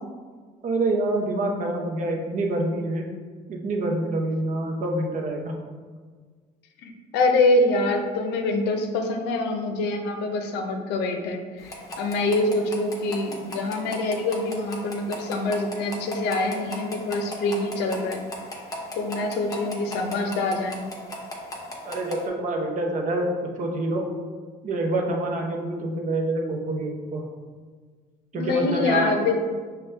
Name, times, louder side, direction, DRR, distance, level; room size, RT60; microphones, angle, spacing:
voice 1, 0.6-3.1 3.5-5.5 21.8-24.1 24.6-27.2 28.3-29.1, right 2 dB, 50° right, 2 dB, 0.6 m, -26 dB
voice 2, 6.8-18.2 19.0-20.9 28.3-29.4, left 2 dB, 80° left, 4 dB, 0.5 m, -25 dB
sound 1, 11.6-22.3, left 1 dB, 20° left, 0.7 m, -38 dB
5.2 x 2.2 x 3.2 m, 1.5 s
cardioid pair, 110°, 17 cm